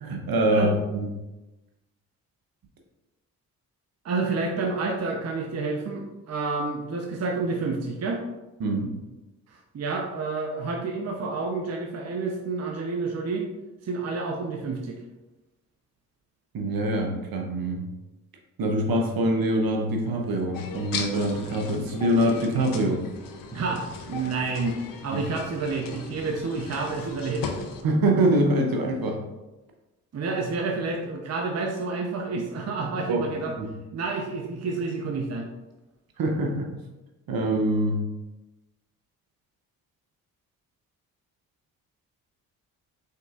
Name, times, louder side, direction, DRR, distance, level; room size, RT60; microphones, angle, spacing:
voice 1, 0.0-1.1 8.6-8.9 16.5-17.8 18.6-23.0 25.1-25.2 27.8-29.2 33.1-33.3 33.6-33.7 36.2-36.7 37.3-38.0, right 1 dB, 55° right, 2 dB, 1.0 m, -24 dB
voice 2, 4.0-8.2 9.5-13.5 13.8-15.0 23.5-24.8 25.0-27.5 30.1-33.5 33.9-35.5, right 3 dB, 40° right, 1 dB, 0.7 m, -29 dB
sound 1, 20.5-27.8, left 5 dB, 55° left, 0.8 m, -37 dB
5.3 x 3.7 x 2.4 m, 1.0 s
hypercardioid pair, 45°, 41 cm